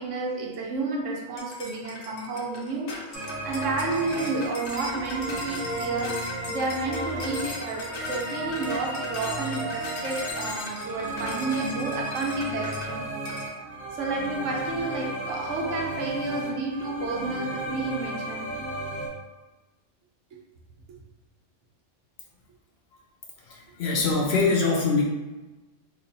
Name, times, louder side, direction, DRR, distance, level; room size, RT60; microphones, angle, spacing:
voice 1, 0.0-13.0 13.9-18.6 20.3-20.4 20.9-21.0, right 3 dB, 75° right, 1 dB, 1.0 m, -31 dB
sound 1, 1.4-12.9 13.3-13.5, left 2 dB, 80° left, 1.1 m, -39 dB
sound 2, 3.1-19.1, right 1 dB, 30° right, 1.0 m, -34 dB
voice 2, 23.5-25.0, left 4 dB, 60° left, -1 dB, 0.8 m, -23 dB
3.0 x 2.4 x 3.8 m, 1.1 s
omnidirectional pair, 1.3 m